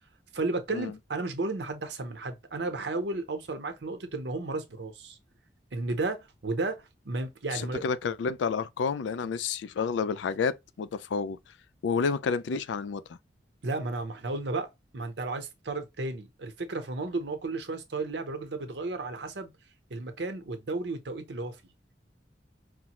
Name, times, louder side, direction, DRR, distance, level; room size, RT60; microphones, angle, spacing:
voice 1, 0.3-5.2 5.7-7.8 13.6-14.7 14.9-19.5 19.9-21.6, right 2 dB, 75° right, 0.8 m, -33 dB
voice 2, 7.5-11.4 11.8-13.0, left 5 dB, 90° left, 0.4 m, -30 dB
4.9 x 2.1 x 2.9 m
head